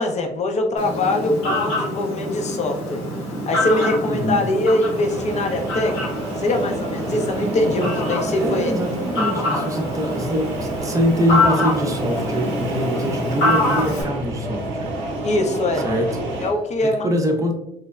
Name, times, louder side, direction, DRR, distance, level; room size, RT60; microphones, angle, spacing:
voice 1, 0.0-3.0 3.5-8.7 9.6-9.7 15.2-15.9 16.4-17.1, left 2 dB, 35° left, 4 dB, 0.5 m, -22 dB
Fowl, 0.8-14.0, left 1 dB, 75° left, 1.1 m, -26 dB
voice 2, 4.0-4.4 8.4-14.9 15.8-16.1 16.8-17.5, equal, 15° right, 2 dB, 0.6 m, -23 dB
sound 1, 4.9-16.5, right 2 dB, 70° right, 0.6 m, -29 dB
3.1 x 2.0 x 2.3 m, 0.82 s
supercardioid pair, 70°, 20 cm